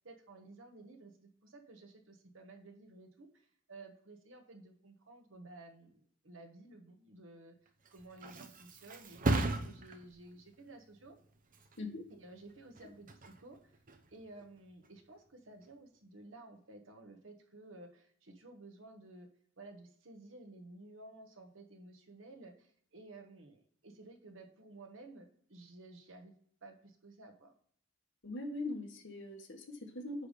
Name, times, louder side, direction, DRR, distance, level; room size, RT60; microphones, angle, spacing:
voice 1, 0.0-11.2 12.1-13.8 14.1-19.3 19.6-26.3 26.6-27.5, right 2 dB, 70° right, 4 dB, 1.3 m, -54 dB
Thump thud, 7.7-15.1 15.5-16.0, right 2 dB, 45° right, 0.8 m, -39 dB
voice 2, 28.2-30.3, left 2 dB, 65° left, 3 dB, 1.4 m, -41 dB
9.2 x 3.5 x 5.1 m, 0.62 s
head